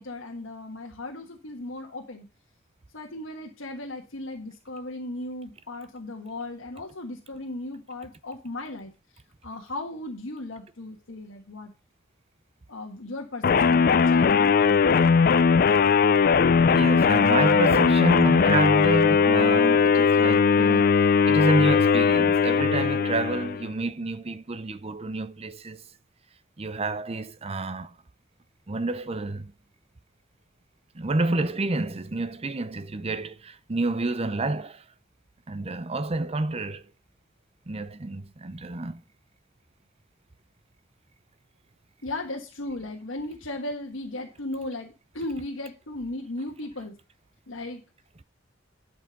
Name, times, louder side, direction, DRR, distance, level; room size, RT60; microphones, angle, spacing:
voice 1, 0.0-2.3 2.9-8.9 9.4-11.7 12.7-14.5 42.0-46.9 47.5-47.8, left 2 dB, 85° left, 1.5 m, -36 dB
sound 1, 13.4-23.7, left 5 dB, 45° left, 0.4 m, -19 dB
voice 2, 16.7-20.9 21.3-25.8 26.6-27.9 28.7-29.5 30.9-34.8 35.5-36.8 37.7-39.0, right 2 dB, 30° right, 0.6 m, -29 dB
11.0 x 5.3 x 5.2 m
head